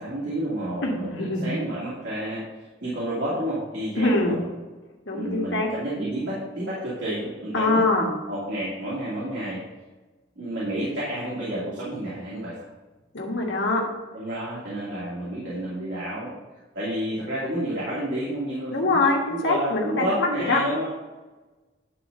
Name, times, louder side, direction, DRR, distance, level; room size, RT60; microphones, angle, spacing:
voice 1, 0.0-4.4 5.1-9.6 10.4-12.7 14.1-16.3 16.7-20.9, right 1 dB, 80° right, -8 dB, 2.6 m, -30 dB
voice 2, 0.8-1.5 4.0-4.4 5.1-5.7 7.5-8.0 13.1-13.9 18.7-20.6, left 2 dB, 85° left, -1 dB, 1.4 m, -23 dB
10.5 x 4.0 x 5.4 m, 1.2 s
head